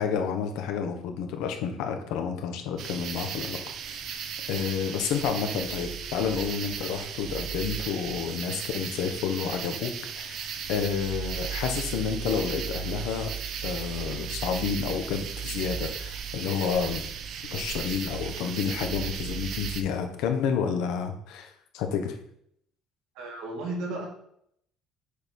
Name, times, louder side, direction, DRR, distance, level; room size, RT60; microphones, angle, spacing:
voice 1, 0.0-3.6 3.9-4.0 4.5-13.3 13.6-17.0 17.5-22.2, left 7 dB, 80° left, 5 dB, 1.2 m, -30 dB
sound 1, 2.8-19.8, right 7 dB, 55° right, 0.7 m, -35 dB
voice 2, 23.1-24.1, right 2 dB, 85° right, -2 dB, 2.7 m, -33 dB
6.6 x 4.8 x 5.3 m, 0.71 s
cardioid pair, 130°, 0 cm